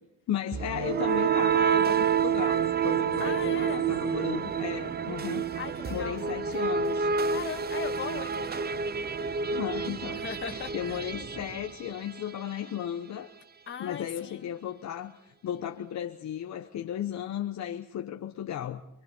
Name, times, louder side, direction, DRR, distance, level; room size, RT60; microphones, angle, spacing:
voice 1, 0.3-5.4 5.9-7.1 9.5-13.3 13.8-18.8, left 10 dB, 60° left, 1.1 m, -35 dB
sound 1, 0.5-12.4, right 7 dB, 30° right, 0.8 m, -28 dB
voice 2, 3.2-3.9 5.5-6.2 7.3-8.7 10.1-11.0 13.7-14.6, left 6 dB, 40° left, 1.9 m, -38 dB
28.5 x 22.0 x 4.5 m
cardioid pair, 110°, 31 cm